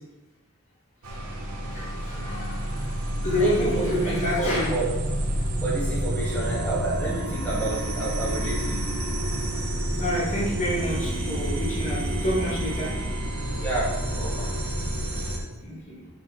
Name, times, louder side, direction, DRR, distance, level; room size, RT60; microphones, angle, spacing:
sound 1, 1.0-15.4, right 1 dB, 80° right, 1.2 m, -29 dB
voice 1, 1.7-4.8 10.0-12.9 15.6-16.1, equal, 35° left, -7 dB, 1.8 m, -28 dB
voice 2, 3.4-4.9 5.6-8.9 13.6-14.5, right 2 dB, 5° left, -8 dB, 2.0 m, -30 dB
5.9 x 5.5 x 3.8 m, 1.1 s
head